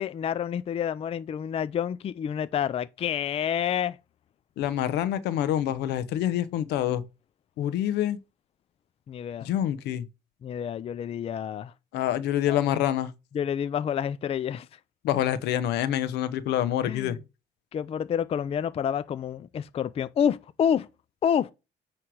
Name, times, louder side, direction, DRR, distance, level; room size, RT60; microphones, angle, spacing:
voice 1, 0.0-4.0 9.1-9.5 10.4-11.7 12.5-12.6 13.3-14.7 16.8-17.2 17.7-20.9 21.2-21.5, left 8 dB, 35° left, 0.4 m, -28 dB
voice 2, 4.6-7.0 7.6-8.2 9.4-10.1 11.9-13.1 15.0-17.2, left 11 dB, 85° left, 0.9 m, -26 dB
9.2 x 3.3 x 6.2 m
cardioid pair, 110°, 17 cm